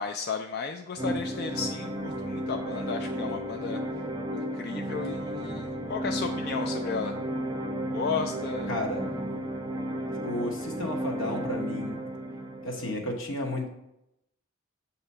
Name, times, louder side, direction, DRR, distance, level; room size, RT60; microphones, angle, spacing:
voice 1, 0.0-3.8 4.3-7.2 7.9-8.7, left 5 dB, 50° left, 5 dB, 0.3 m, -34 dB
sound 1, 1.0-12.9, right 1 dB, 20° right, 0.5 m, -33 dB
voice 2, 8.7-9.1 10.2-12.0 12.6-13.7, left 1 dB, 80° left, 1 dB, 1.2 m, -32 dB
7.1 x 2.9 x 5.4 m, 0.84 s
head